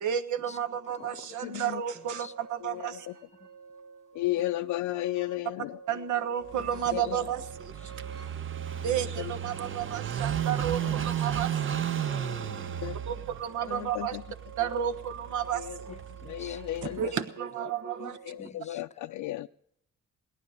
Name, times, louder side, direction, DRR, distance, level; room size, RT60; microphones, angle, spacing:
voice 1, 0.0-3.1 5.9-7.7 8.8-11.8 13.1-14.2 14.6-15.9 17.0-18.2, right 9 dB, 75° right, 11 dB, 1.2 m, -32 dB
sound 1, 0.9-18.4, right 5 dB, 60° right, 2.6 m, -49 dB
voice 2, 1.4-1.8 2.6-3.1 4.1-5.8 6.9-7.2 9.2-9.3 10.8-10.9 12.0-13.0 13.7-14.2 15.6-15.8 16.3-17.1 18.3-19.5, left 16 dB, 80° left, 6 dB, 0.5 m, -34 dB
voice 3, 2.0-2.3 6.6-7.3 7.8-7.9 10.9-12.3 13.2-13.3 15.9-16.6 16.9-17.2 18.0-18.8, left 5 dB, 25° left, 14 dB, 0.6 m, -50 dB
Car passing by / Idling, 6.5-17.1, right 10 dB, 40° right, 0.7 m, -34 dB
17.5 x 11.0 x 6.4 m, 0.74 s
cardioid pair, 90°, 30 cm